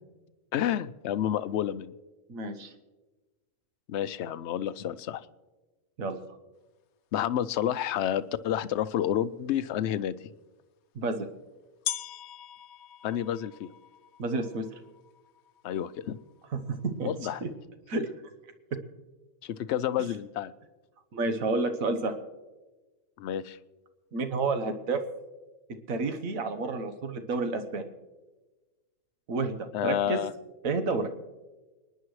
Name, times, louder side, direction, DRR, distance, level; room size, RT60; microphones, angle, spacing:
voice 1, 0.5-1.9 3.9-5.3 7.1-10.2 13.0-13.7 15.6-16.2 17.0-17.5 19.4-20.5 23.2-23.6 29.7-30.3, left 10 dB, 65° left, 15 dB, 0.8 m, -30 dB
voice 2, 2.3-2.7 6.0-6.2 10.9-11.3 14.2-14.8 16.7-17.1 17.4-17.5 17.9-18.1 21.1-22.1 24.1-25.0 25.9-27.9 29.3-29.5 29.8-30.2 30.6-31.1, right 3 dB, 75° right, 8 dB, 1.5 m, -30 dB
sound 1, 7.9-8.0 8.8-8.9 10.6-10.7 11.8-17.4, left 10 dB, 90° left, 1.1 m, -42 dB
30.0 x 10.5 x 3.2 m, 1.2 s
omnidirectional pair, 1.5 m